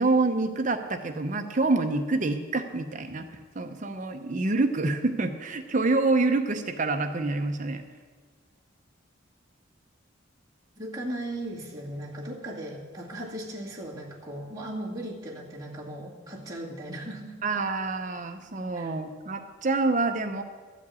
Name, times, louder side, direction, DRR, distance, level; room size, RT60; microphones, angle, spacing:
voice 1, 0.0-3.3 3.5-7.8 17.4-20.4, right 3 dB, 40° right, 7 dB, 0.7 m, -27 dB
voice 2, 10.8-17.4 18.7-18.9, right 1 dB, 20° right, -6 dB, 2.0 m, -37 dB
13.0 x 5.2 x 8.3 m, 1.5 s
head